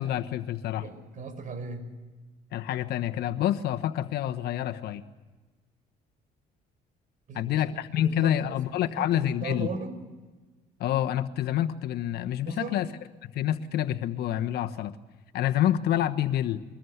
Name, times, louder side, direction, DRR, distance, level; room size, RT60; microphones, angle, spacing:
voice 1, 0.0-0.9 2.5-5.0 7.3-9.7 10.8-12.9 13.3-14.9 15.3-16.6, left 11 dB, 70° left, 8 dB, 1.2 m, -27 dB
voice 2, 0.8-1.9 7.3-7.5 7.9-8.6 9.0-10.0 12.5-12.8, right 4 dB, 50° right, 9 dB, 5.3 m, -38 dB
24.0 x 20.5 x 8.1 m, 1.3 s
cardioid pair, 110°, 17 cm